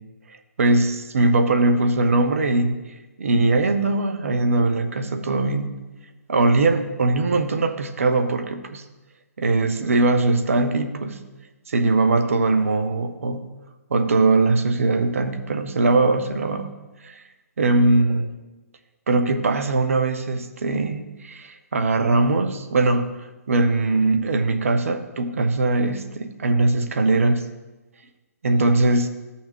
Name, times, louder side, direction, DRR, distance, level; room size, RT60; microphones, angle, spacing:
voice 1, 0.6-2.8 3.2-5.7 6.3-8.8 9.4-11.2 11.7-13.5 13.9-16.7 17.0-17.2 17.6-18.2 19.1-23.2 23.5-27.5 28.4-29.1, right 2 dB, 60° right, 8 dB, 0.9 m, -21 dB
14.5 x 5.7 x 3.0 m, 1.1 s
figure-of-eight pair, 135°, 9 cm